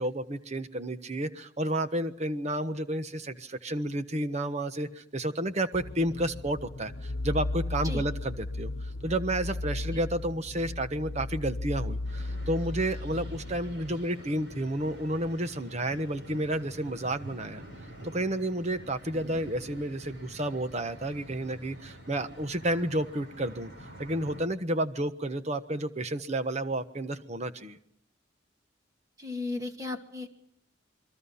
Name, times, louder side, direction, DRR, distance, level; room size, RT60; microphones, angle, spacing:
voice 1, 0.0-17.6 18.0-23.7 24.0-27.8, right 1 dB, 35° right, 10 dB, 1.3 m, -31 dB
sound 1, 5.7-14.0, left 2 dB, 80° left, 1.0 m, -35 dB
sound 2, 12.0-24.4, equal, 60° right, 6.9 m, -47 dB
voice 2, 29.2-30.3, left 3 dB, 20° right, 4 dB, 2.3 m, -35 dB
28.5 x 23.0 x 5.7 m, 0.69 s
head